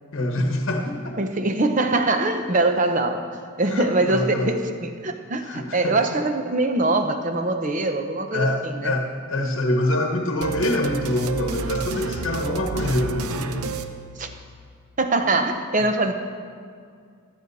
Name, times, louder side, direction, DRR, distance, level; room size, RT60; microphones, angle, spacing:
voice 1, 0.1-1.1 3.7-4.5 5.5-6.0 8.3-13.7, left 1 dB, 60° left, 2 dB, 1.1 m, -25 dB
voice 2, 1.2-3.3 3.6-8.9 14.2-14.3 15.0-16.1, right 2 dB, 35° right, 7 dB, 0.8 m, -23 dB
sound 1, 10.4-14.7, right 4 dB, 80° right, 0.6 m, -31 dB
15.0 x 12.5 x 4.1 m, 2.2 s
head